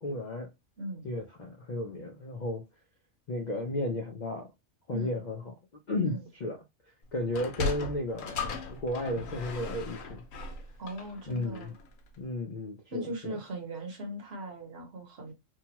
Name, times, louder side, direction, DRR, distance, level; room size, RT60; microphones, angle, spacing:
voice 1, 0.0-0.5 1.0-2.6 3.3-4.5 4.9-5.5 5.9-6.6 7.1-10.2 11.3-11.7 12.2-13.4, left 1 dB, 65° left, 0.4 m, -34 dB
voice 2, 0.8-1.1 4.9-5.2 6.0-6.3 10.8-11.7 12.9-15.3, right 1 dB, 55° right, 1.1 m, -39 dB
Sliding door, 7.2-11.9, left 3 dB, 90° left, 1.1 m, -37 dB
2.8 x 2.2 x 2.8 m
omnidirectional pair, 1.3 m